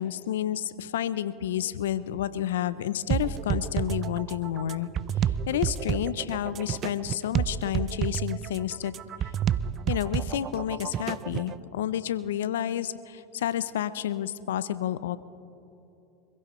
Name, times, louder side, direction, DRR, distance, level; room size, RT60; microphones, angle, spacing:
voice 1, 0.0-4.9 5.5-8.9 9.9-15.2, left 11 dB, 75° left, 15 dB, 0.6 m, -30 dB
sound 1, 3.1-11.6, right 9 dB, 40° right, 0.5 m, -30 dB
26.0 x 16.0 x 3.1 m, 2.9 s
hypercardioid pair, 85°, 0 cm